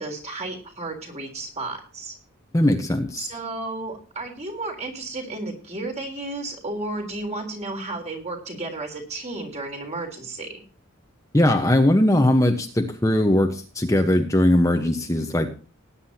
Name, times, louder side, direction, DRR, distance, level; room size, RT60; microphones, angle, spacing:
voice 1, 0.0-2.1 3.2-10.6, right 2 dB, 35° right, 2 dB, 3.7 m, -33 dB
voice 2, 2.5-3.3 11.3-15.5, left 1 dB, 15° left, 4 dB, 1.1 m, -20 dB
19.0 x 9.9 x 2.9 m, 0.36 s
head